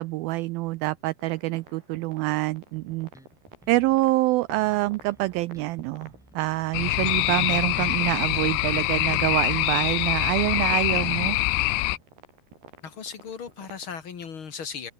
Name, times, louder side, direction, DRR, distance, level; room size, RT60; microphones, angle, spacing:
voice 1, 0.0-3.1 3.7-11.4, right 20 dB, 85° right, 2.1 m, -26 dB
sound 1, 1.2-14.0, right 4 dB, 70° right, 8.8 m, -49 dB
Bass guitar, 2.7-4.2 4.5-9.0 9.3-12.3, equal, ahead, 5.5 m, -56 dB
sound 2, 6.7-12.0, left 20 dB, 85° left, 2.9 m, -24 dB
voice 2, 12.8-14.9, left 6 dB, 45° left, 1.7 m, -37 dB
omnidirectional pair, 4.8 m